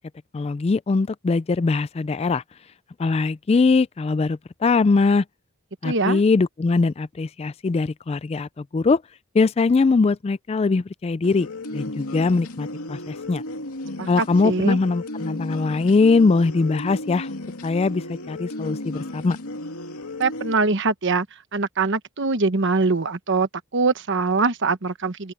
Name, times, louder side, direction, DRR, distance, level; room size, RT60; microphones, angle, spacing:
voice 1, 0.3-2.4 3.0-5.2 5.8-9.0 9.3-13.4 14.1-17.3 17.6-19.4, left 4 dB, 25° left, 0.3 m, -21 dB
voice 2, 5.8-6.2 14.0-14.8 20.2-21.3 21.5-25.3, right 3 dB, 55° right, 1.1 m, -23 dB
sound 1, 11.2-20.5, left 1 dB, 80° left, 2.7 m, -34 dB
open air
head